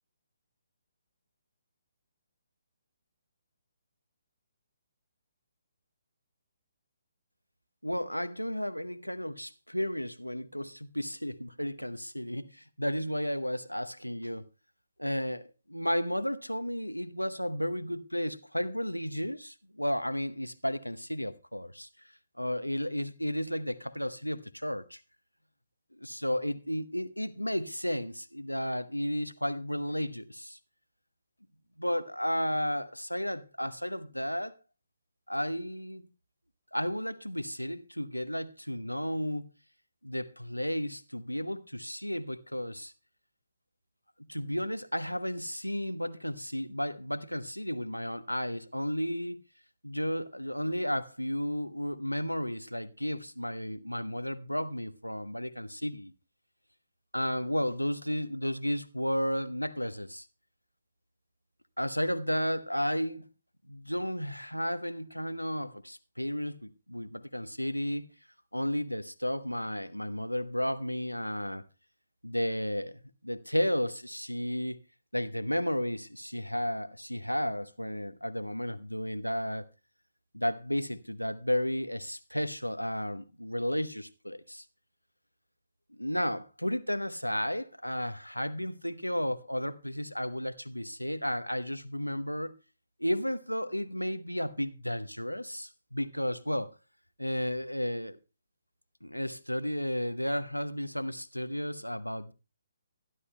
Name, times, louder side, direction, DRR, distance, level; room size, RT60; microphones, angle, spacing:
voice 1, 7.8-14.5 15.0-21.9 22.4-25.0 25.9-30.6 31.8-34.6 35.3-36.1 36.7-39.5 40.0-42.9 44.3-49.4 49.8-56.1 57.1-60.3 61.8-63.3 63.7-68.1 68.5-71.6 72.2-74.8 75.1-79.7 80.3-84.6 85.9-92.5 93.0-96.8 97.2-98.2 99.0-102.3, equal, 90° left, 0.8 m, -33 dB
23.5 x 11.5 x 2.2 m
figure-of-eight pair, 135°, 0 cm